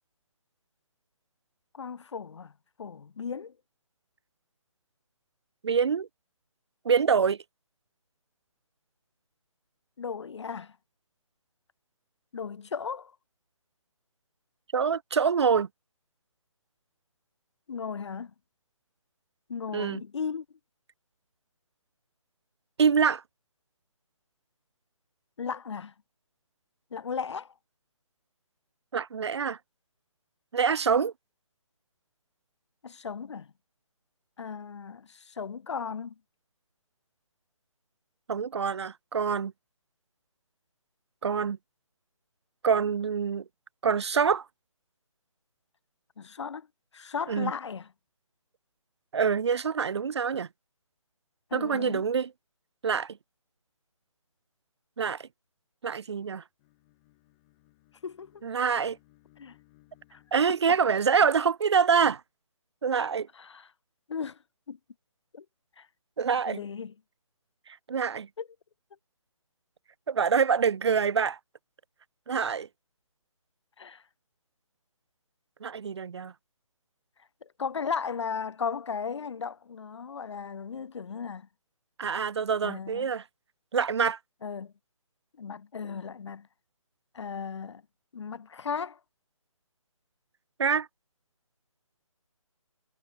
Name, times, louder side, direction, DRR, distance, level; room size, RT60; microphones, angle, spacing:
voice 1, 1.7-2.5 2.8-3.5 10.0-10.8 12.3-13.2 17.7-18.3 19.5-20.5 25.4-25.9 26.9-27.5 32.8-33.5 34.4-36.2 46.2-46.7 46.9-47.9 51.5-52.1 58.0-58.4 59.4-59.6 60.1-60.2 60.5-60.8 63.3-63.7 64.1-64.4 64.7-64.8 65.3-65.5 65.8-65.9 66.5-66.9 68.4-68.5 73.8-74.0 77.4-81.5 82.6-83.1 84.4-84.7 85.4-86.5 87.1-87.8 88.1-89.0, left 6 dB, 55° left, 0.5 m, -36 dB
voice 2, 5.6-6.1 6.9-7.4 14.7-15.7 19.7-20.0 22.8-23.2 28.9-29.6 30.5-31.1 38.3-39.5 41.2-41.6 42.6-43.4 43.8-44.5 47.3-47.5 49.1-50.5 51.5-52.3 52.8-53.2 55.0-55.3 55.8-56.4 58.4-59.0 60.3-62.2 62.8-63.3 66.2-66.6 67.9-68.3 70.1-71.4 72.3-72.7 75.6-76.3 82.0-83.2 83.7-84.2 90.6-90.9, right 6 dB, 50° right, 0.5 m, -25 dB
Bowed string instrument, 56.6-61.0, left 21 dB, 25° left, 7.6 m, -64 dB
figure-of-eight pair, 145°, 17 cm